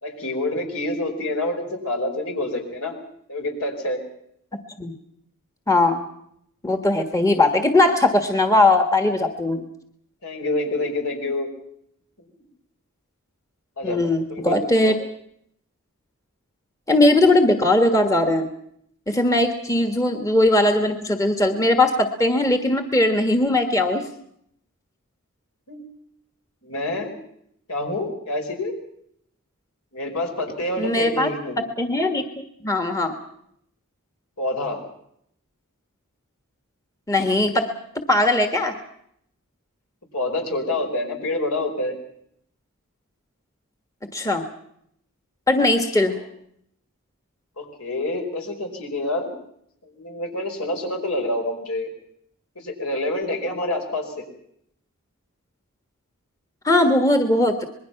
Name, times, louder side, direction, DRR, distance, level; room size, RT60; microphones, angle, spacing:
voice 1, 0.0-3.0 3.3-4.0 10.2-11.5 13.8-14.0 14.3-15.0 25.7-25.9 26.6-27.2 27.7-28.8 29.9-31.6 34.4-34.8 40.1-41.9 46.0-46.3 47.6-49.3 49.8-51.9 52.6-54.2, left 2 dB, 75° left, 3 dB, 5.2 m, -27 dB
voice 2, 5.7-6.0 6.6-9.6 13.8-15.0 16.9-18.5 19.1-24.0 30.8-31.3 31.8-32.2 32.6-33.1 37.1-37.7 38.1-38.7 44.1-44.4 45.5-46.1 56.6-57.6, left 2 dB, 15° left, 6 dB, 1.4 m, -19 dB
26.0 x 21.0 x 5.8 m, 0.71 s
head